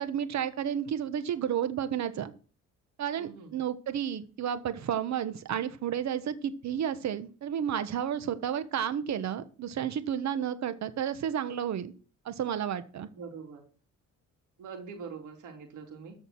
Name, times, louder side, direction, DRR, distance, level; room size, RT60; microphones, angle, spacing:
voice 1, 0.0-2.3 3.0-11.9 12.2-13.1, right 9 dB, 65° right, 12 dB, 1.4 m, -31 dB
voice 2, 3.2-3.6 13.1-13.6 14.6-16.1, right 5 dB, 80° right, 3 dB, 3.7 m, -43 dB
14.0 x 5.3 x 6.2 m, 0.39 s
cardioid pair, 90°, 30 cm